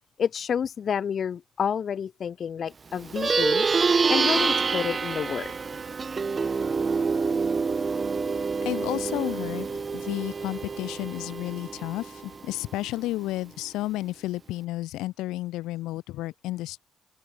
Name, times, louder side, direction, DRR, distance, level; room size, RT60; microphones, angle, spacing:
voice 1, 0.2-3.7 4.1-5.5, left 7 dB, 60° left, 1.9 m, -29 dB
Plucked string instrument, 3.0-12.7, right 5 dB, 40° right, 1.2 m, -27 dB
voice 2, 8.6-9.7 9.9-16.8, left 17 dB, 90° left, 6.5 m, -32 dB
open air
supercardioid pair, 65°, 0 cm